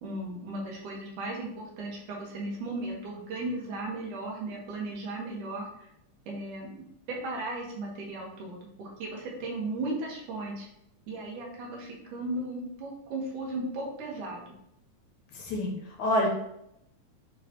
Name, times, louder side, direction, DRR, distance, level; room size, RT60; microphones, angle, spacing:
voice 1, 0.0-5.9 6.3-6.7 7.2-10.7 11.1-14.5, right 2 dB, 75° right, -3 dB, 3.1 m, -36 dB
voice 2, 15.3-16.3, left 1 dB, 70° left, -1 dB, 2.6 m, -27 dB
10.0 x 4.1 x 3.0 m, 0.79 s
omnidirectional pair, 3.6 m